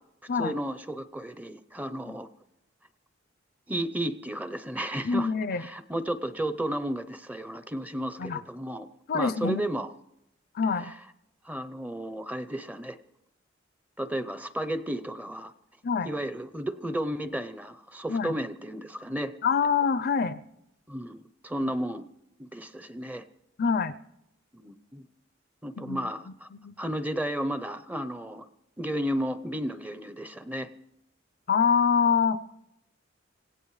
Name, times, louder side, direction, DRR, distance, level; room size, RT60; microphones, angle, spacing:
voice 1, 0.4-2.3 3.7-5.3 5.6-8.9 9.1-9.9 10.8-11.0 11.4-13.0 14.0-15.5 16.0-19.3 20.9-22.1 22.4-23.2 24.5-25.1 25.6-26.5 26.8-28.5 28.8-30.7, right 1 dB, 10° right, 13 dB, 0.6 m, -33 dB
voice 2, 5.0-5.7 8.2-8.4 9.1-9.7 10.5-10.9 15.8-16.1 18.1-18.3 19.4-20.4 23.6-24.0 25.8-26.0 26.5-26.8 31.5-32.4, left 6 dB, 50° left, 15 dB, 0.5 m, -25 dB
26.5 x 17.0 x 3.2 m, 0.83 s
head